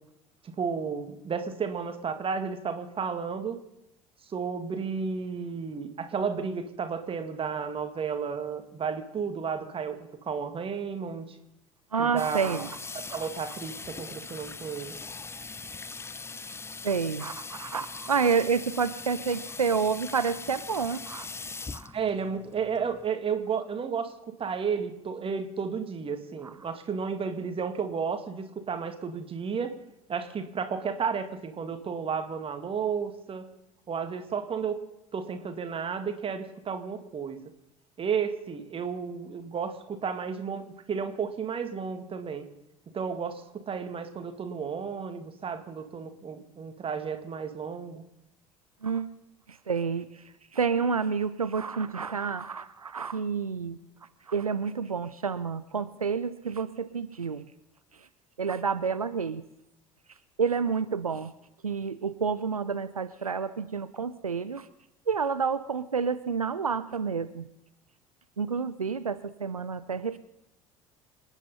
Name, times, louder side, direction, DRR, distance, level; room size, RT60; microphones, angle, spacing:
voice 1, 0.4-3.6 4.3-11.3 12.0-12.7 12.9-15.0 21.9-24.1 24.4-29.7 30.1-33.5 33.9-34.8 35.1-37.4 38.0-42.5 42.9-48.1, right 6 dB, 30° right, 7 dB, 2.0 m, -32 dB
voice 2, 11.9-12.8 16.8-21.3 21.7-21.9 26.4-26.5 48.8-49.1 49.5-50.2 50.5-53.8 54.3-57.4 58.4-59.4 60.4-61.3 61.6-64.7 65.1-67.4 68.4-70.2, right 5 dB, 85° right, 13 dB, 0.5 m, -29 dB
Water tap faucet / Sink (filling or washing), 12.2-23.1, left 4 dB, 15° left, 0.6 m, -41 dB
26.5 x 9.9 x 5.5 m, 0.84 s
figure-of-eight pair, 60°, 18 cm